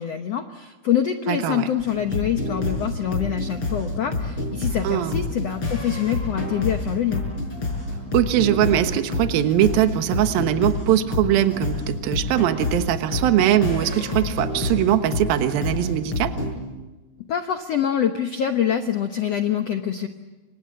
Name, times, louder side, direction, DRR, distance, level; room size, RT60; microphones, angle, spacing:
voice 1, 0.0-7.2 17.3-20.1, left 9 dB, 75° left, 7 dB, 1.5 m, -25 dB
voice 2, 1.3-1.7 4.8-5.2 8.1-16.4, right 11 dB, 70° right, 8 dB, 3.0 m, -21 dB
sound 1, 1.8-16.5, left 2 dB, 30° left, 6.5 m, -28 dB
29.5 x 26.0 x 7.7 m, 1.2 s
omnidirectional pair, 4.6 m